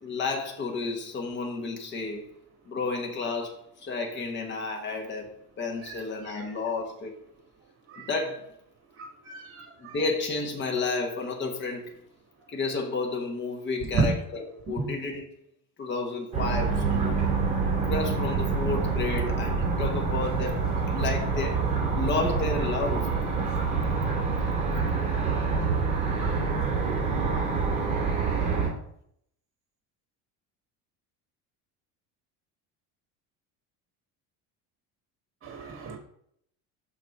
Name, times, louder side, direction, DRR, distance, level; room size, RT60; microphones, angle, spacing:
voice 1, 0.0-2.3 2.7-7.1 8.0-8.5 9.8-11.9 12.5-15.3 15.8-17.2 17.8-21.6 21.9-23.1, left 3 dB, 30° left, 1.2 m, -31 dB
voice 2, 9.0-9.9 13.9-14.0 35.4-36.0, right 5 dB, 35° right, 2.0 m, -31 dB
sound 1, 16.3-28.7, right 4 dB, 20° right, 2.6 m, -26 dB
6.2 x 3.9 x 5.4 m
cardioid pair, 130°, 37 cm